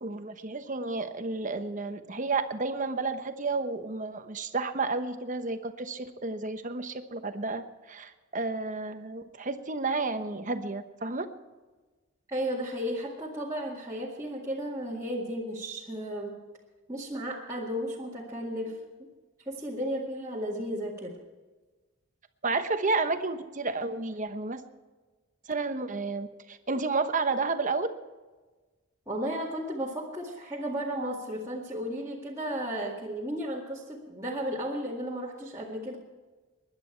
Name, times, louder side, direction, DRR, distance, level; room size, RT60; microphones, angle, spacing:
voice 1, 0.0-11.3 22.4-24.6 25.5-27.9, right 3 dB, 35° right, 8 dB, 1.0 m, -31 dB
voice 2, 12.3-16.4 16.9-18.8 19.5-21.1 29.1-36.0, equal, 15° right, -6 dB, 2.0 m, -34 dB
20.5 x 11.0 x 4.6 m, 1.3 s
head